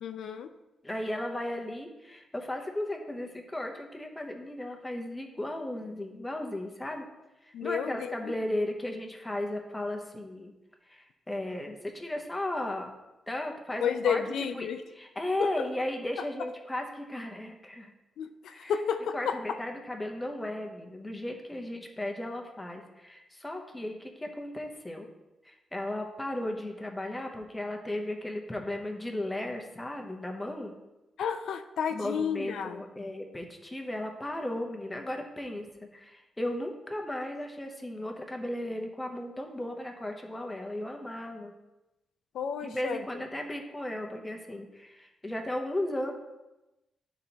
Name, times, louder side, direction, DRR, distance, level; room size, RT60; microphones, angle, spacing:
voice 1, 0.0-0.5 7.5-8.3 13.8-14.8 15.4-15.6 18.2-19.4 31.2-32.8 42.3-43.0, left 7 dB, 80° left, 8 dB, 0.4 m, -31 dB
voice 2, 0.8-7.1 7.4-10.5 10.9-12.9 13.3-14.2 14.5-14.7 14.9-17.9 18.5-18.7 19.1-25.1 25.5-30.7 31.9-35.7 35.9-41.5 42.6-46.1, left 1 dB, 10° left, 2 dB, 0.7 m, -35 dB
11.5 x 4.0 x 2.9 m, 1.0 s
wide cardioid pair, 170°, 0 cm